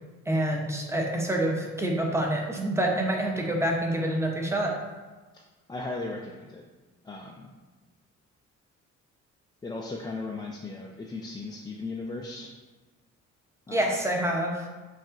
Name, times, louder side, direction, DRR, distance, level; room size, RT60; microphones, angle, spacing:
voice 1, 0.3-4.7 13.7-14.6, right 1 dB, 10° right, 0 dB, 0.7 m, -27 dB
voice 2, 5.7-6.6 7.0-7.5 9.6-12.5 13.7-13.8, left 3 dB, 15° left, -1 dB, 0.3 m, -37 dB
5.3 x 2.4 x 3.6 m, 1.3 s
cardioid pair, 90°, 30 cm